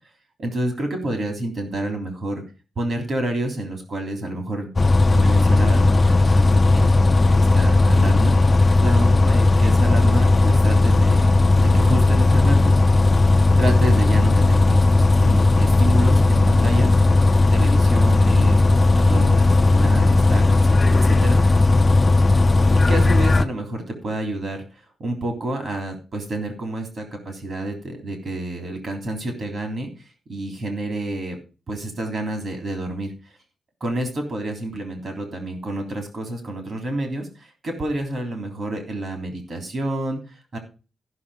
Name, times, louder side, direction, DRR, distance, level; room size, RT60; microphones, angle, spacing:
voice 1, 0.4-2.4 2.7-4.7 5.1-8.3 8.8-12.8 13.6-21.6 22.7-29.9 30.3-31.4 31.7-33.1 33.8-40.6, right 1 dB, 45° right, 4 dB, 3.5 m, -29 dB
Bus, 4.8-23.4, left 2 dB, 25° left, 0.5 m, -16 dB
14.5 x 6.5 x 5.0 m, 0.33 s
wide cardioid pair, 140°, 0 cm